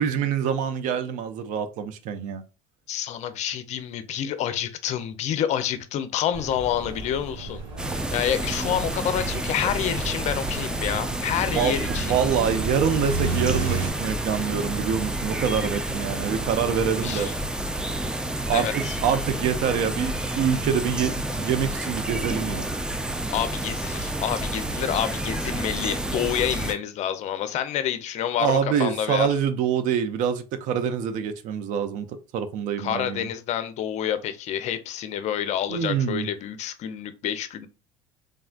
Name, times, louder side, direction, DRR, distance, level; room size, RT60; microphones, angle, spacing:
voice 1, 0.0-2.4 11.5-17.3 18.5-22.7 28.4-33.3 35.7-36.3, right 8 dB, 60° right, 0.5 m, -25 dB
voice 2, 2.9-12.2 17.0-17.3 18.5-18.9 23.3-29.3 32.8-37.7, left 10 dB, 50° left, 0.5 m, -28 dB
sound 1, 6.3-13.9, right 4 dB, 80° right, 1.6 m, -33 dB
sound 2, 7.8-26.7, right 1 dB, 5° right, 0.3 m, -29 dB
3.5 x 2.2 x 2.4 m
supercardioid pair, 100°, 15 cm